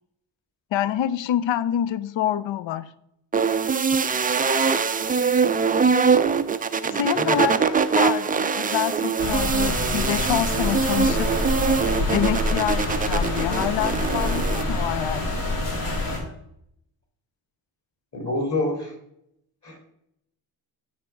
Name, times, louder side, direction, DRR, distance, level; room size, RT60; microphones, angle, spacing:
voice 1, 0.7-2.9 6.9-11.3 12.1-15.4, left 11 dB, 65° left, 16 dB, 0.6 m, -27 dB
sound 1, 3.3-14.6, right 5 dB, 20° right, 0.3 m, -23 dB
voice 2, 6.8-7.4 18.1-18.9 19.6-19.8, left 1 dB, 35° left, 3 dB, 2.8 m, -27 dB
sound 2, 9.2-16.2, left 2 dB, 85° left, 2.1 m, -26 dB
9.5 x 3.5 x 4.8 m, 0.77 s
cardioid pair, 65°, 49 cm